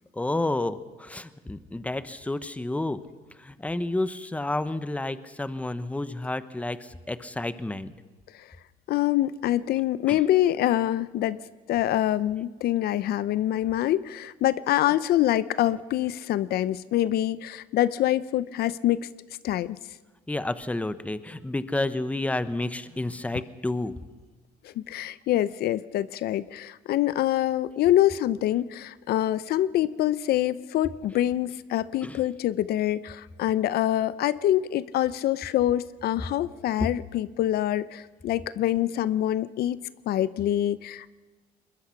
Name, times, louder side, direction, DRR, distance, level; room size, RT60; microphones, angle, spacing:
voice 1, 0.1-3.0 3.4-7.9 10.1-10.2 20.3-23.9 32.0-32.2, left 2 dB, 10° left, 13 dB, 1.0 m, -30 dB
voice 2, 8.9-11.4 11.7-19.1 19.4-19.8 24.6-41.1, left 13 dB, 70° left, 17 dB, 0.6 m, -25 dB
21.5 x 21.5 x 5.9 m, 1.3 s
cardioid pair, 110°, 17 cm